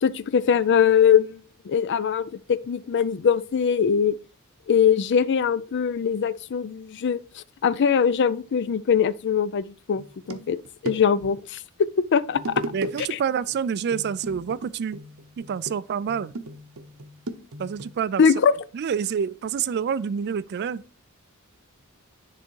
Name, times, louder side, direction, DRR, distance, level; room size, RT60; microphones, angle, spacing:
voice 1, 0.0-4.2 4.7-10.6 10.8-11.6 12.1-12.4 18.2-18.5, left 7 dB, 55° left, 0.4 m, -22 dB
sound 1, 10.0-11.3 12.3-13.0 13.3-13.6 13.9-17.9, right 2 dB, 70° right, 0.8 m, -36 dB
voice 2, 12.7-15.0 15.4-16.3 17.6-18.2 18.7-20.8, right 7 dB, 50° right, 0.3 m, -27 dB
10.0 x 3.5 x 4.6 m
head